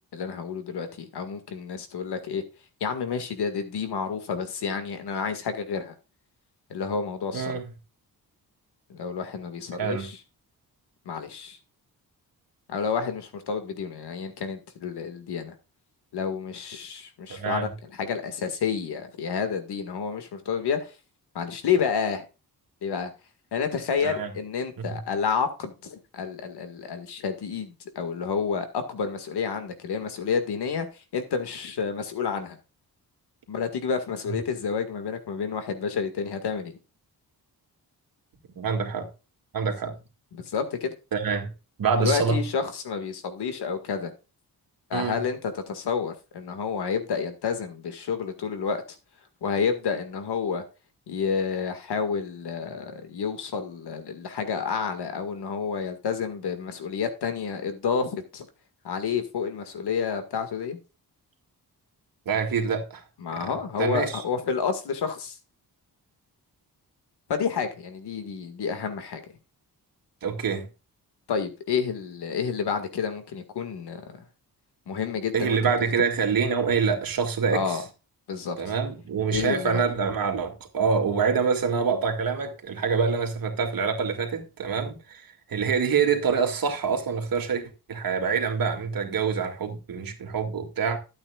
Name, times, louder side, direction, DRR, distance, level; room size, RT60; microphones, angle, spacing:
voice 1, 0.1-2.4 2.8-5.9 6.7-7.6 8.9-10.2 11.1-11.6 12.7-15.5 16.1-17.7 18.0-20.9 21.4-22.2 22.8-23.1 23.5-30.9 31.1-32.6 33.5-36.7 40.3-40.9 42.0-44.1 44.9-48.8 49.4-50.6 51.1-58.5 58.8-60.8 63.2-65.4 67.3-69.2 71.3-74.2 74.9-75.6 77.5-77.8 78.3-78.6 79.3-79.8, left 6 dB, 90° left, 2.0 m, -29 dB
voice 2, 7.3-7.7 9.8-10.1 17.3-17.7 24.0-24.3 24.8-25.0 38.6-39.1 39.5-40.0 41.1-41.5 41.8-42.4 44.9-45.2 62.3-63.0 63.3-64.2 70.2-70.7 75.3-77.8 78.6-91.0, right 6 dB, 60° right, 2.4 m, -26 dB
13.0 x 8.7 x 2.4 m
wide cardioid pair, 135°, 39 cm